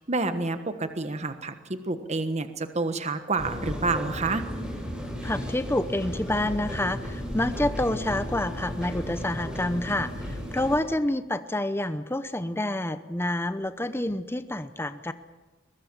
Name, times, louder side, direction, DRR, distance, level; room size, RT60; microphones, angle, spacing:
voice 1, 0.0-4.4, right 3 dB, 35° right, 9 dB, 1.3 m, -29 dB
sound 1, 3.4-10.8, equal, 5° right, 7.9 m, -34 dB
voice 2, 5.2-15.1, left 1 dB, 10° left, 11 dB, 0.8 m, -28 dB
22.5 x 21.0 x 7.5 m, 1.2 s
head